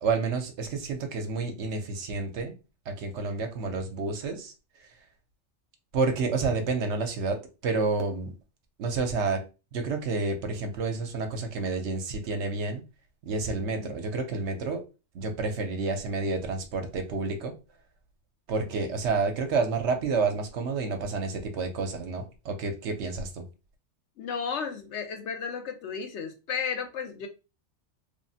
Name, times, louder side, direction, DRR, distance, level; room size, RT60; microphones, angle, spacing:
voice 1, 0.0-2.5 2.9-4.5 5.9-8.3 8.8-9.4 9.7-12.8 13.2-14.8 15.1-17.5 18.5-23.5, right 4 dB, 75° right, 0.9 m, -29 dB
voice 2, 13.8-14.2 24.2-27.3, left 6 dB, 75° left, 0.9 m, -34 dB
3.1 x 2.0 x 2.7 m
omnidirectional pair, 1.2 m